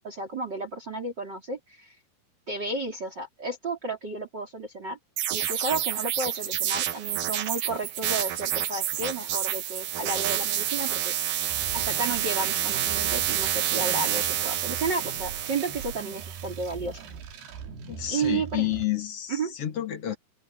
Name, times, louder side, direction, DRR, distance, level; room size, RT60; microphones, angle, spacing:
voice 1, 0.0-2.0 2.5-5.0 5.3-11.1 11.7-17.0 18.1-18.7 19.3-19.5, right 3 dB, 25° right, 3.7 m, -32 dB
sound 1, 5.2-16.6, right 11 dB, 60° right, 2.5 m, -28 dB
sound 2, 11.5-18.9, right 5 dB, 85° right, 4.4 m, -41 dB
voice 2, 17.9-20.2, left 13 dB, 50° left, 2.0 m, -30 dB
open air
omnidirectional pair, 4.6 m